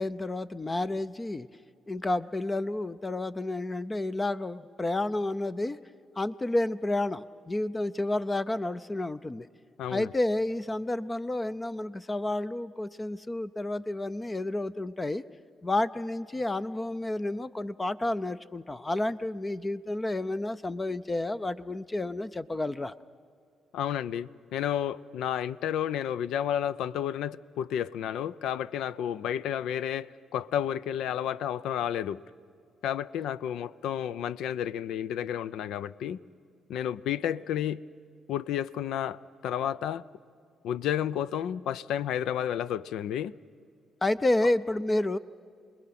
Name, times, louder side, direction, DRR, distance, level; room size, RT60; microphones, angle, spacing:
voice 1, 0.0-1.5 1.9-5.8 6.2-9.5 9.9-15.2 15.6-22.9 44.0-45.2, left 2 dB, 20° left, 0.5 m, -30 dB
voice 2, 9.8-10.1 23.7-32.2 32.8-36.2 36.7-37.8 38.3-40.0 40.6-43.3, left 10 dB, 85° left, 0.5 m, -31 dB
28.5 x 20.5 x 5.9 m
cardioid pair, 90°, 0 cm